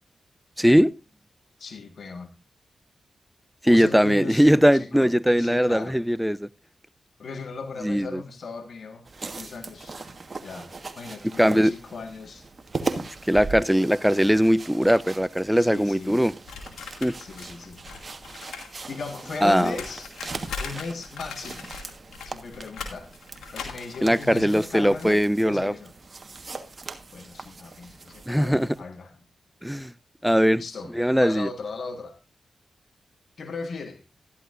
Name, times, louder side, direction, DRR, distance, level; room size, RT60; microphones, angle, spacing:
voice 1, 0.6-0.9 3.6-6.5 7.8-8.2 11.4-11.7 13.3-16.3 17.0-17.1 19.4-19.7 24.0-25.7 28.3-28.7 29.6-29.9 30.2-30.6 30.9-31.5, equal, 5° right, 0.5 m, -20 dB
voice 2, 1.6-2.3 3.7-5.1 5.4-6.0 7.2-9.0 9.4-10.0 10.4-10.7 11.0-12.5 15.5-16.2 17.2-17.8 18.9-20.1 20.6-21.7 22.2-23.1 23.5-25.9 27.1-29.2 30.5-32.2 33.4-34.0, left 4 dB, 70° left, 1.6 m, -37 dB
sound 1, 9.1-28.8, right 3 dB, 45° right, 1.5 m, -39 dB
sound 2, 16.5-18.7 19.0-25.1, left 5 dB, 90° left, 2.4 m, -40 dB
13.0 x 11.5 x 2.6 m
cardioid pair, 45°, 0 cm